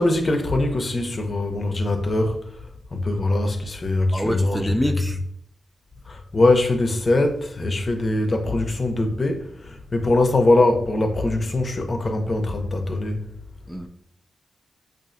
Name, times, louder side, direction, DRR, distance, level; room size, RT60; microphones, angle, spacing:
voice 1, 0.0-4.7 6.1-13.2, left 2 dB, 45° left, 0.6 m, -22 dB
voice 2, 4.1-5.2 13.7-13.9, equal, ahead, 0.4 m, -25 dB
4.6 x 2.5 x 2.5 m
supercardioid pair, 40°, 0 cm